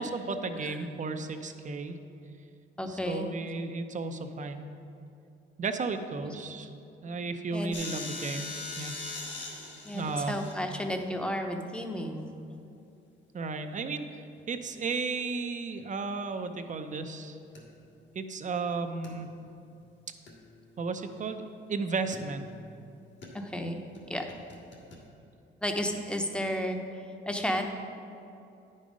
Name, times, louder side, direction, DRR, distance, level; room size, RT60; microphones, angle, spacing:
voice 1, 0.0-2.0 2.9-4.7 5.6-6.7 7.0-9.0 9.9-10.3 13.3-14.2 14.5-17.4 18.1-19.3 20.8-21.4 21.7-22.5, right 4 dB, 40° right, 8 dB, 0.6 m, -34 dB
voice 2, 2.8-3.3 6.2-6.4 7.5-7.7 9.8-12.3 23.3-23.8 24.1-24.3 25.6-26.8 27.3-27.6, equal, 5° left, 4 dB, 0.8 m, -32 dB
sound 1, 7.7-10.5 14.5-14.7 17.5-17.8 19.0-19.1 19.5-19.7 20.3-21.2 22.1-22.7 23.2-23.3 23.9-24.0 24.3-25.0, left 3 dB, 65° left, 1.8 m, -42 dB
9.8 x 5.4 x 5.1 m, 2.7 s
cardioid pair, 90°, 20 cm